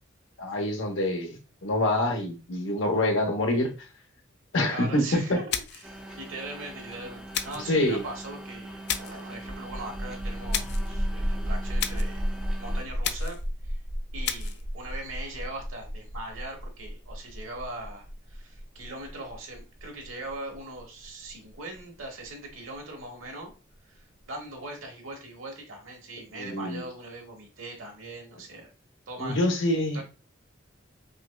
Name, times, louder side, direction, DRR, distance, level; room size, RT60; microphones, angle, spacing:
voice 1, 0.4-3.7 4.5-5.4 7.7-8.0 26.3-26.8 29.2-30.0, left 1 dB, 75° left, 2 dB, 0.9 m, -26 dB
voice 2, 4.7-12.3 12.6-13.8 14.1-23.5 23.8-28.7 29.1-29.4 29.9-30.0, right 2 dB, 90° right, 2 dB, 1.2 m, -41 dB
sound 1, 5.5-5.9 7.3-7.7 8.9-9.2 10.5-10.9 11.8-12.2 13.0-13.5 14.2-14.6, left 9 dB, 55° left, 0.3 m, -32 dB
sound 2, 5.8-12.8, right 1 dB, 5° right, 0.4 m, -42 dB
sound 3, 9.4-22.7, equal, 40° right, 0.7 m, -33 dB
5.5 x 2.1 x 2.2 m, 0.31 s
head